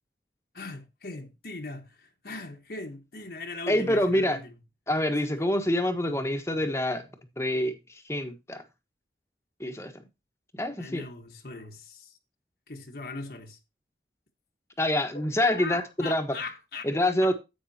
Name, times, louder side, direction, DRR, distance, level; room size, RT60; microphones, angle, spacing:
voice 1, 0.5-4.5 5.2-5.3 10.8-12.2 12.7-13.6 15.1-15.3 15.5-17.3, left 3 dB, 60° left, 1.4 m, -40 dB
voice 2, 3.7-4.4 4.9-7.0 7.4-8.6 9.6-10.0 10.5-11.0 14.8-16.3 16.8-17.3, left 1 dB, 15° left, 1.3 m, -26 dB
10.0 x 8.9 x 2.8 m
head